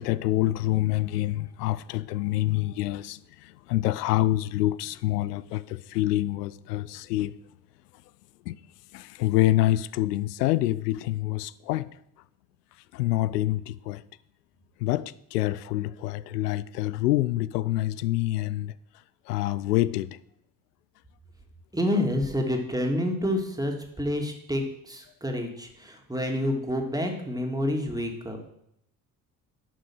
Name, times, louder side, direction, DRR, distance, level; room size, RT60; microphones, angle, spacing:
voice 1, 0.0-7.3 8.5-8.6 8.9-11.9 12.9-14.0 14.8-18.7 19.3-20.1, left 15 dB, 80° left, 0.6 m, -26 dB
voice 2, 21.7-28.5, left 1 dB, 10° right, 2.6 m, -28 dB
11.0 x 6.2 x 6.5 m
figure-of-eight pair, 50°, 47 cm